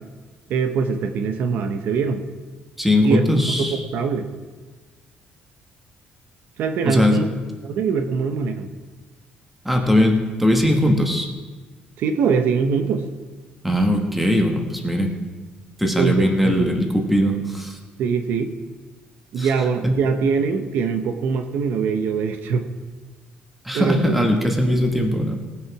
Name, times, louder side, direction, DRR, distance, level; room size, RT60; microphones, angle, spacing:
voice 1, 0.5-2.2 3.0-3.3 3.6-4.3 6.6-7.3 7.6-8.7 12.0-13.1 16.0-16.7 18.0-18.5 19.3-22.6 23.7-24.5, right 5 dB, 75° right, 7 dB, 0.9 m, -22 dB
voice 2, 2.8-3.8 6.8-7.2 9.6-11.3 13.6-15.1 15.8-17.8 19.4-19.5 19.8-19.9 23.6-25.4, left 1 dB, 5° right, 2 dB, 1.4 m, -20 dB
19.0 x 6.5 x 4.8 m, 1.3 s
cardioid pair, 155°, 3 cm